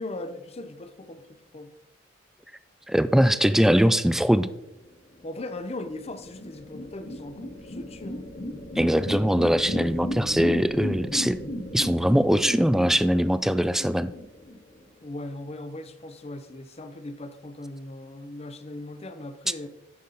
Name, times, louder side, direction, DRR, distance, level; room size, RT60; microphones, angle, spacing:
voice 1, 0.0-1.7 5.2-8.3 15.0-19.7, left 2 dB, 35° left, 10 dB, 0.7 m, -38 dB
voice 2, 2.9-4.5 8.8-11.4 11.7-14.1, equal, ahead, 14 dB, 0.3 m, -21 dB
sound 1, 5.3-15.0, left 1 dB, 55° left, 1.8 m, -35 dB
9.5 x 6.7 x 3.9 m, 0.90 s
head